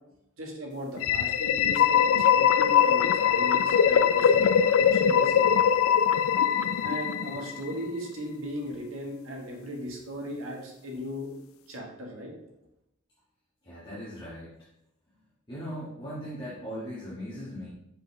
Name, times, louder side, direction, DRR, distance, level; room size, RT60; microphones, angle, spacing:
voice 1, 0.4-5.6 6.8-11.3 11.7-12.3, equal, 85° right, 0 dB, 1.5 m, -37 dB
sound 1, 1.0-7.7, left 8 dB, 90° left, 0.3 m, -22 dB
voice 2, 13.6-14.5 15.5-17.7, equal, 25° left, -10 dB, 1.5 m, -38 dB
5.4 x 5.4 x 3.2 m, 0.84 s
head